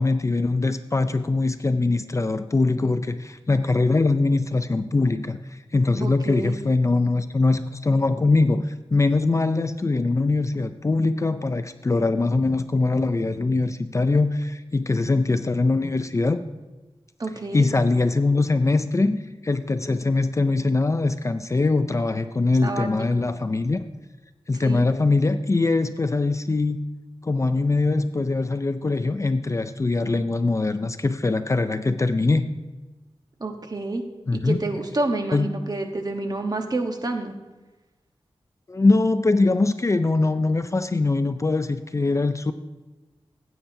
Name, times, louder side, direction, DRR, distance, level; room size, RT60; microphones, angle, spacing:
voice 1, 0.0-16.4 17.5-23.8 24.5-26.8 27.2-32.5 34.3-34.6 35.3-35.5 38.7-42.5, left 3 dB, 30° left, 10 dB, 0.4 m, -22 dB
voice 2, 6.0-6.6 17.2-17.7 22.6-22.9 24.6-24.9 33.4-34.0 34.3-37.3, right 2 dB, 40° right, 4 dB, 1.1 m, -28 dB
15.5 x 8.5 x 2.7 m, 1.2 s
wide cardioid pair, 105°, 10 cm